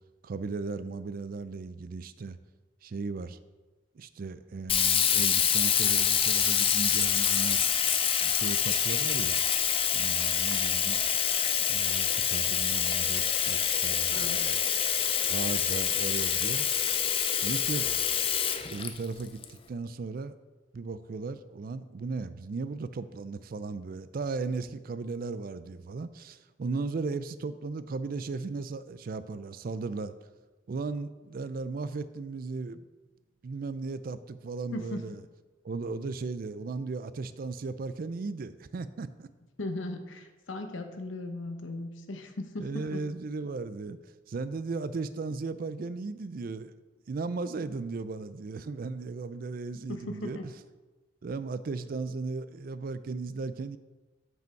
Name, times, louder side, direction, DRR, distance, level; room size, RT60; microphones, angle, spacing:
voice 1, 0.2-2.4 2.8-3.4 3.9-7.6 8.0-9.4 9.9-11.1 11.7-14.6 15.2-16.7 17.4-17.9 18.7-20.3 20.7-30.1 30.7-32.9 33.4-35.2 35.6-39.3 42.6-44.0 44.3-46.7 47.1-50.5 51.2-53.8, right 4 dB, 50° right, 14 dB, 0.4 m, -36 dB
Sink (filling or washing), 4.7-19.4, left 8 dB, 30° left, 0.5 m, -26 dB
voice 2, 14.1-14.4 34.7-35.2 36.7-36.8 39.6-43.0 49.9-50.5, left 2 dB, 85° left, 6 dB, 0.9 m, -38 dB
7.8 x 5.4 x 4.5 m, 1.2 s
head